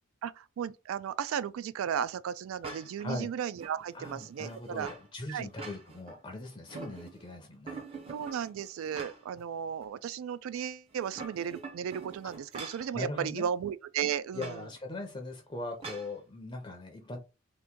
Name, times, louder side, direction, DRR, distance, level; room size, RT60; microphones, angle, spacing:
voice 1, 0.2-4.9 5.3-5.5 8.1-14.6, right 8 dB, 85° right, 0.3 m, -35 dB
sound 1, 2.6-3.1 3.6-5.1 5.4-6.2 6.5-7.3 7.7-9.4 9.8-9.9 10.9-12.9 14.4-14.6 15.8-16.1, right 3 dB, 30° right, 0.5 m, -44 dB
voice 2, 3.0-3.3 3.9-7.8 12.9-13.5 14.3-17.2, left 2 dB, 25° left, 0.5 m, -40 dB
2.9 x 2.5 x 3.5 m
head